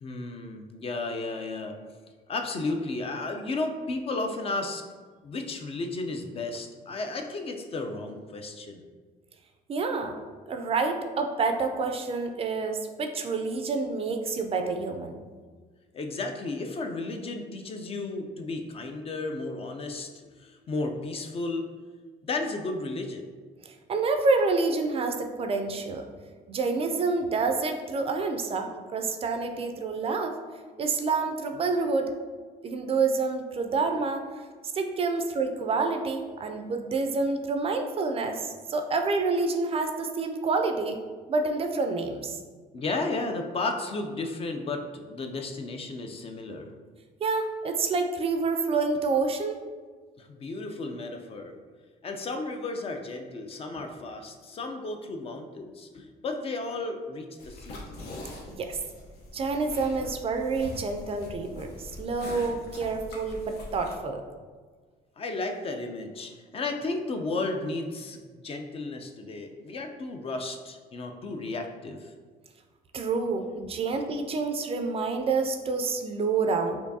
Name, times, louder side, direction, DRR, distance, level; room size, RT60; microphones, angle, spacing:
voice 1, 0.0-1.7 2.3-4.8 5.2-8.8 15.9-20.1 20.4-21.7 22.2-23.3 42.7-46.7 50.2-51.5 52.0-57.8 65.2-72.1, left 3 dB, 35° left, 5 dB, 0.4 m, -33 dB
voice 2, 9.7-10.1 10.5-15.1 23.6-26.0 26.5-30.3 30.8-32.1 32.6-34.5 34.7-41.0 41.3-42.4 47.2-49.6 58.5-58.8 59.3-64.2 72.9-76.8, right 4 dB, 35° right, 5 dB, 0.3 m, -28 dB
sound 1, 57.4-64.0, left 1 dB, 80° left, 0.8 m, -43 dB
4.4 x 2.6 x 2.7 m, 1.5 s
cardioid pair, 110°, 17 cm